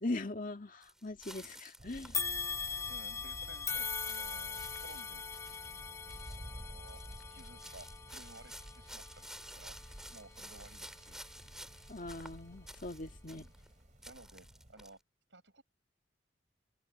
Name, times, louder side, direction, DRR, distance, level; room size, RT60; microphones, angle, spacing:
voice 1, 0.0-2.2 11.9-13.4, left 2 dB, 45° left, 1.9 m, -40 dB
sound 1, 0.8-2.8 3.2-3.7 4.0-5.8 6.1-6.5 6.8-13.7 14.0-14.9, right 1 dB, 5° right, 2.2 m, -53 dB
sound 2, 1.8-14.7, equal, 40° right, 3.7 m, -53 dB
sound 3, 2.1-11.5 12.0-12.1 13.1-13.2, left 5 dB, 15° left, 1.1 m, -41 dB
voice 2, 2.9-5.2 6.5-9.8 10.1-11.2 13.3-13.5 14.0-15.0 15.3-15.6, right 2 dB, 80° right, 7.6 m, -56 dB
open air
head